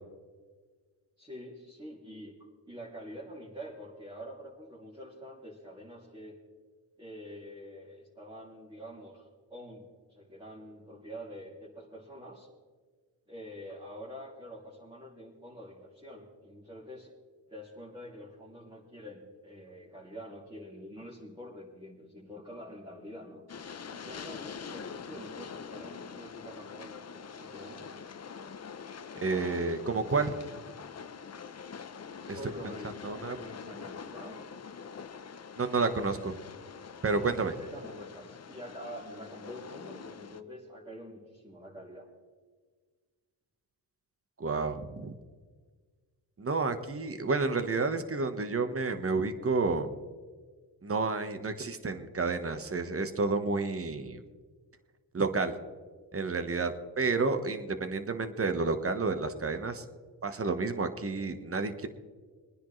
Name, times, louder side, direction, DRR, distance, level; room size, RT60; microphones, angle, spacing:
voice 1, 1.2-2.3 2.6-6.3 7.0-12.5 13.3-17.1 17.5-23.4 23.9-27.9 32.3-34.4 37.6-42.1, equal, 10° right, -6 dB, 3.0 m, -46 dB
Train, 23.5-40.4, left 6 dB, 40° left, 0.8 m, -44 dB
voice 2, 29.2-30.3 32.3-32.4 33.0-33.4 35.6-36.3 37.0-37.5 44.4-45.2 46.4-49.9 50.8-54.2 55.1-55.6 56.1-59.8 60.2-61.9, right 3 dB, 35° right, 9 dB, 1.4 m, -30 dB
23.0 x 10.0 x 3.3 m, 1.5 s
cardioid pair, 80°, 41 cm